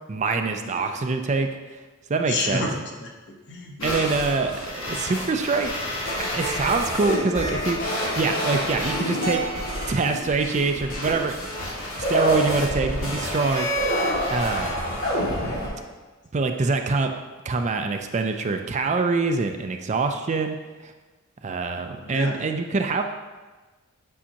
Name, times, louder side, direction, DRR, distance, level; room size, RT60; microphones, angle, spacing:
voice 1, 0.1-1.5 2.1-2.6 3.8-5.7 6.2-7.8 8.2-9.4 9.9-11.4 12.0-13.7 14.3-14.8 16.3-17.1 17.4-20.6 20.8-20.9 21.4-23.0, right 4 dB, 35° right, 5 dB, 0.4 m, -24 dB
voice 2, 0.6-1.0 2.2-4.1 22.0-22.4, left 3 dB, 55° left, 0 dB, 1.0 m, -31 dB
sound 1, 3.8-15.7, equal, 85° left, 2.3 m, -28 dB
8.5 x 5.5 x 2.9 m, 1.3 s
head